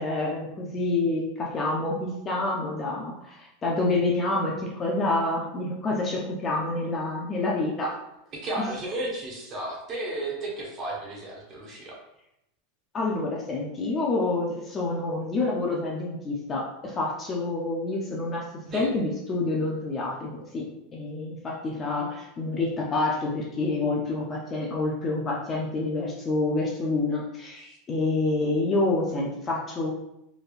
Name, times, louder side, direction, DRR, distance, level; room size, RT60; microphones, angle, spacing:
voice 1, 0.0-8.0 12.9-18.4 18.7-20.6 20.9-29.9, left 2 dB, 20° left, -2 dB, 0.6 m, -28 dB
voice 2, 8.3-11.9 18.7-18.9, right 1 dB, 30° right, -3 dB, 1.3 m, -33 dB
4.3 x 3.4 x 2.5 m, 0.84 s
supercardioid pair, 155°, 0 cm